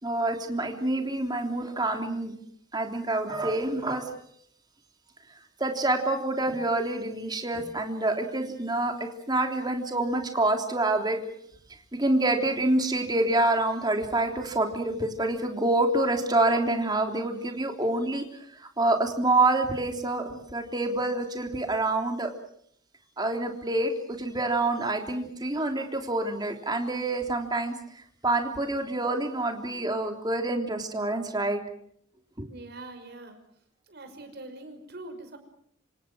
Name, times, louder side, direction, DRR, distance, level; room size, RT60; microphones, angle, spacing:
voice 1, 0.0-2.3 2.7-4.1 5.6-11.2 11.9-18.2 18.5-22.3 23.2-27.7 28.2-31.6 32.4-32.5, right 2 dB, 20° right, 4 dB, 3.4 m, -27 dB
voice 2, 32.5-33.4 33.9-35.4, right 2 dB, 55° right, 7 dB, 5.8 m, -43 dB
27.0 x 26.5 x 6.3 m, 0.67 s
head